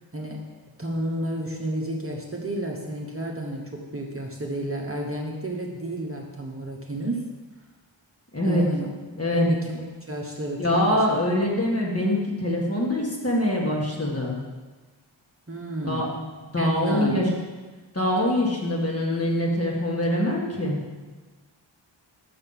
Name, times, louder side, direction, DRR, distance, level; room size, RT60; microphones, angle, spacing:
voice 1, 0.1-0.4 0.8-7.3 8.4-8.9 9.3-11.2 15.5-16.1 16.6-17.3, right 1 dB, 30° right, -1 dB, 1.0 m, -31 dB
voice 2, 8.3-8.6 9.1-9.5 10.6-14.4 15.8-16.1 16.5-17.3 17.9-20.8, left 1 dB, 30° left, -3 dB, 1.8 m, -24 dB
6.4 x 6.0 x 5.7 m, 1.3 s
wide cardioid pair, 50°, 47 cm